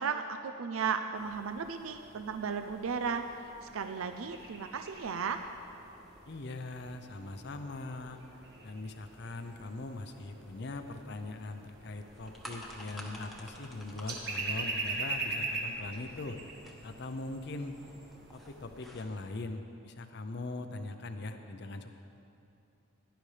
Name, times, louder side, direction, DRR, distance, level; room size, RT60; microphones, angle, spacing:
voice 1, 0.0-5.4, right 6 dB, 85° right, 7 dB, 0.5 m, -35 dB
sound 1, 1.1-18.9, right 3 dB, 50° right, 1.7 m, -43 dB
voice 2, 6.2-8.2 8.6-16.4 16.8-17.8 18.3-21.9, left 2 dB, 55° left, 7 dB, 0.6 m, -41 dB
sound 2, 12.1-19.4, equal, ahead, 1.1 m, -51 dB
17.5 x 10.5 x 3.3 m, 2.7 s
head